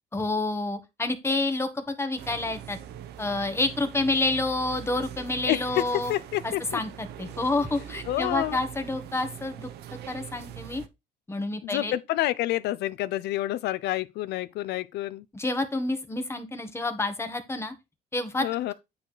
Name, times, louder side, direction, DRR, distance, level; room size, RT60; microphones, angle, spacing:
voice 1, 0.1-2.8 3.2-6.1 6.7-9.7 10.1-10.8 11.3-11.9 15.3-17.7 18.1-18.4, left 2 dB, 15° left, 1.7 m, -28 dB
sound 1, 2.2-10.9, right 10 dB, 75° right, 1.1 m, -42 dB
voice 2, 5.4-6.8 8.1-8.6 11.6-15.2 18.4-18.7, left 15 dB, 80° left, 0.7 m, -28 dB
9.4 x 4.3 x 5.0 m
cardioid pair, 110°, 17 cm